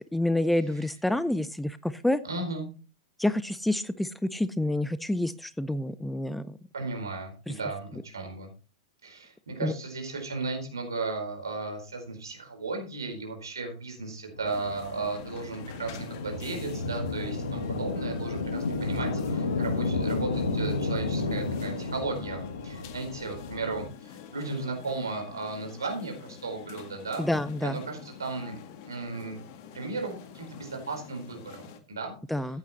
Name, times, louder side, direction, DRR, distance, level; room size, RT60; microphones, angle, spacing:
voice 1, 0.0-2.2 3.2-6.6 7.5-7.6 9.6-9.7 27.2-27.8 32.3-32.6, left 1 dB, 5° left, 16 dB, 0.5 m, -28 dB
voice 2, 2.3-2.7 6.7-8.5 9.0-27.3 27.6-28.6 28.9-29.4 29.7-32.4, right 3 dB, 70° right, 3 dB, 4.5 m, -35 dB
sound 1, 14.3-23.9, left 3 dB, 70° left, 1.5 m, -32 dB
sound 2, 14.4-31.8, left 7 dB, 45° left, 1.7 m, -46 dB
15.0 x 9.4 x 3.1 m, 0.35 s
figure-of-eight pair, 95°, 2 cm